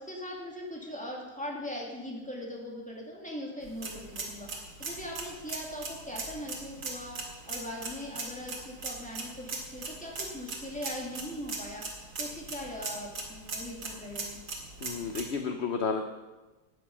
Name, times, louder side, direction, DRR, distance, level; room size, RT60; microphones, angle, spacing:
voice 1, 0.0-14.4, left 1 dB, 5° left, -2 dB, 2.6 m, -40 dB
sound 1, 3.6-15.2, right 3 dB, 80° right, 2.6 m, -40 dB
voice 2, 14.8-16.0, left 5 dB, 50° left, 6 dB, 0.9 m, -31 dB
14.0 x 9.3 x 5.5 m, 1.2 s
omnidirectional pair, 1.8 m